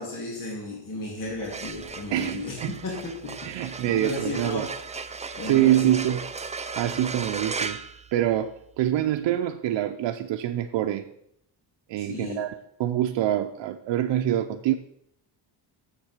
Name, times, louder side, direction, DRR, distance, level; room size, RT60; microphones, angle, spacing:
voice 1, 0.0-2.6 2.8-4.8 5.4-6.1 12.0-12.4, left 2 dB, 45° left, 2.4 m, -34 dB
sound 1, 1.3-8.7, right 4 dB, 15° right, 0.4 m, -36 dB
voice 2, 2.1-2.8 3.4-4.7 5.4-6.3 6.8-7.8 8.1-11.1 11.9-14.7, right 12 dB, 90° right, 0.6 m, -25 dB
7.4 x 7.4 x 6.5 m
wide cardioid pair, 150°, 43 cm